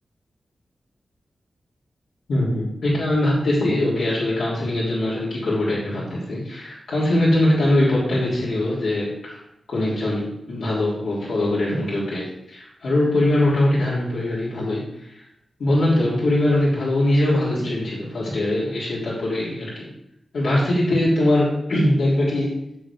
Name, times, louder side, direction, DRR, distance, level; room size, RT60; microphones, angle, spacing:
voice 1, 2.3-9.4 9.7-15.2 15.6-19.9 20.3-22.6, left 1 dB, 80° left, -8 dB, 3.4 m, -22 dB
14.0 x 7.1 x 3.6 m, 0.79 s
wide cardioid pair, 155°, 0 cm